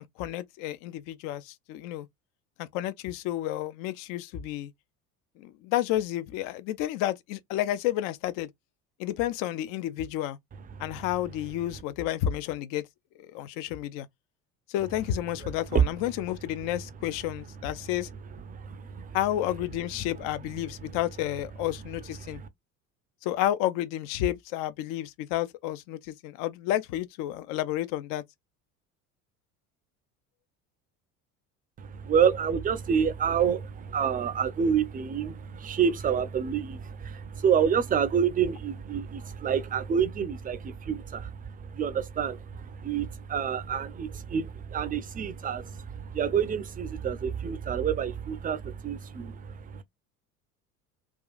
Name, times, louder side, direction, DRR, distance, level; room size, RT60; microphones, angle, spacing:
voice 1, 0.0-2.1 2.6-4.7 5.4-8.5 9.0-10.4 10.8-12.8 13.2-14.1 14.7-18.1 19.1-22.4 23.2-28.2, left 13 dB, 45° left, 0.5 m, -31 dB
voice 2, 18.5-19.2 22.2-22.3 31.8-49.8, right 7 dB, 20° right, 0.5 m, -28 dB
3.5 x 2.3 x 2.4 m
hypercardioid pair, 65°, 45 cm